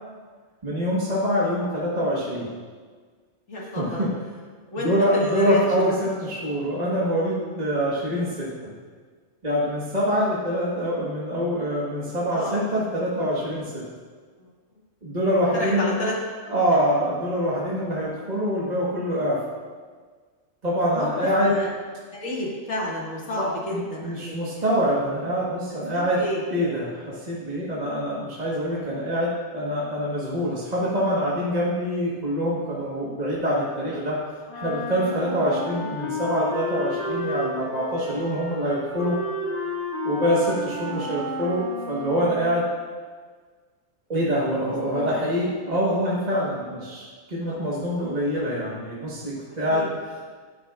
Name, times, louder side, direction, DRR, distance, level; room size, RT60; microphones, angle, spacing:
voice 1, 0.6-2.5 3.8-4.1 4.8-8.7 9.4-13.8 15.0-16.0 16.5-19.4 20.6-21.5 23.4-26.2 26.5-34.2 34.6-39.2 40.0-42.7 44.1-49.9, equal, 30° right, -6 dB, 1.5 m, -25 dB
voice 2, 3.5-4.1 4.7-5.7 9.7-9.8 12.3-12.6 14.4-14.5 15.5-16.2 20.9-21.1 21.4-21.7 22.1-24.6 25.9-26.4 35.2-35.3 44.6-45.2 47.4-47.6 49.7-49.9, left 1 dB, 75° left, -4 dB, 2.3 m, -30 dB
Wind instrument woodwind instrument, 34.5-42.6, left 1 dB, 55° left, 3.0 m, -32 dB
13.0 x 9.4 x 2.4 m, 1.6 s
omnidirectional pair, 1.4 m